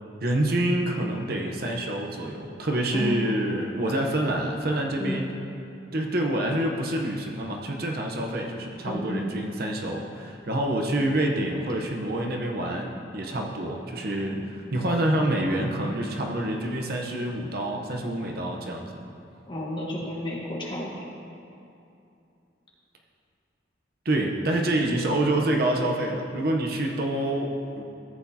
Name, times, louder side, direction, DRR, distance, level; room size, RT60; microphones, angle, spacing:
voice 1, 0.2-5.3 5.9-18.9 24.0-27.8, right 1 dB, 50° right, 1 dB, 0.8 m, -27 dB
voice 2, 2.9-3.3 5.0-5.2 8.8-9.2 14.3-14.4 14.7-14.8 19.5-20.9, equal, 25° left, -3 dB, 1.3 m, -32 dB
14.0 x 8.2 x 2.8 m, 2.7 s
head